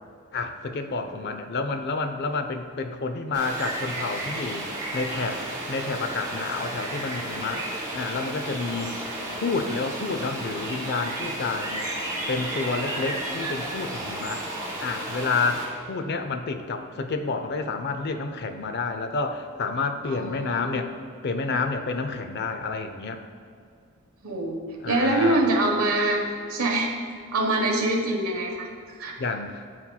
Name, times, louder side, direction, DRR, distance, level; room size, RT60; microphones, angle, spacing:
voice 1, 0.3-5.4 5.7-7.7 7.9-8.9 9.4-11.9 12.3-14.4 14.8-20.9 21.2-23.2 24.8-25.4 29.2-29.6, left 4 dB, 50° left, 7 dB, 0.5 m, -29 dB
voice 2, 1.0-1.3 20.0-20.8 24.2-24.6 24.9-26.2 26.5-26.9 27.3-28.7 29.0-29.1, right 2 dB, 90° right, 0 dB, 1.2 m, -24 dB
sound 1, 3.3-15.6, right 1 dB, 15° right, 1.4 m, -33 dB
12.5 x 4.3 x 2.3 m, 2.3 s
head